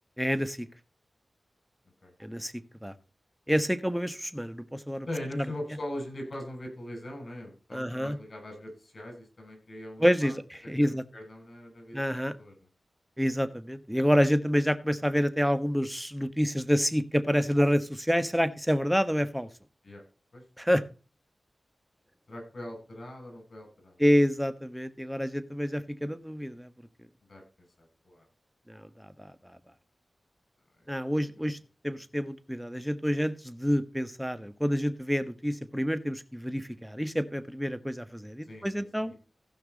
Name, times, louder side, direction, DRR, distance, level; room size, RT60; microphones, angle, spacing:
voice 1, 0.2-0.7 2.2-2.5 2.8-2.9 3.5-5.1 5.4-5.5 7.7-8.2 10.0-11.0 11.9-12.4 13.2-19.5 20.6-20.8 24.0-26.7 28.7-28.8 29.2-29.3 30.9-31.6 31.8-39.1, equal, 5° right, 11 dB, 1.4 m, -28 dB
voice 2, 5.1-10.3 10.6-12.6 19.8-20.0 20.3-20.4 22.3-24.0 27.3-27.4 27.8-28.2 31.0-31.1 31.4-31.5 31.9-32.0 38.4-39.1, left 1 dB, 60° left, 3 dB, 7.2 m, -41 dB
15.5 x 5.9 x 4.2 m, 0.34 s
cardioid pair, 40°, 0 cm